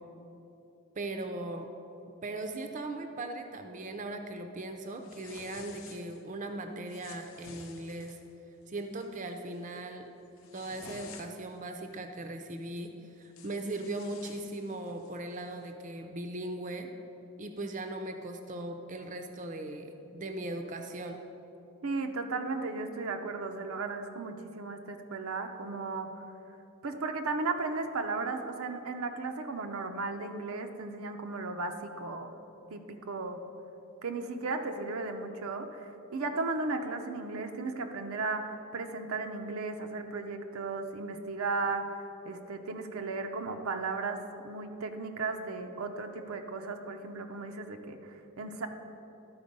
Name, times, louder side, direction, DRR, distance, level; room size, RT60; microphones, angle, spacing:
voice 1, 1.0-1.7 2.2-8.2 8.7-10.1 10.5-12.9 13.2-16.9 17.4-21.2, right 2 dB, 35° right, 5 dB, 0.5 m, -39 dB
sound 1, 5.0-6.2 6.9-8.3 8.8-9.1 9.5-9.8 10.2-11.6 12.8-12.9 13.2-15.2, left 5 dB, 75° left, 0.6 m, -52 dB
voice 2, 21.8-26.2 26.8-32.3 32.7-33.4 34.0-48.7, right 3 dB, 85° right, 5 dB, 0.6 m, -35 dB
12.5 x 4.3 x 5.3 m, 2.9 s
head